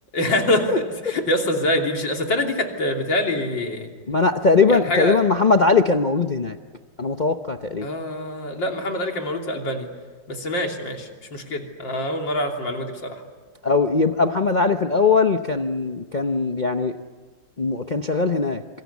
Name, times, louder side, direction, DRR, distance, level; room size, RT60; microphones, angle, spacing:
voice 1, 0.1-3.9 4.7-5.1 7.8-9.9 10.3-13.2, left 1 dB, 75° left, 2 dB, 3.8 m, -25 dB
voice 2, 4.1-6.6 7.0-7.9 13.6-16.9 17.6-18.6, left 4 dB, 40° left, 5 dB, 0.6 m, -20 dB
27.0 x 25.0 x 8.4 m, 1.4 s
omnidirectional pair, 2.0 m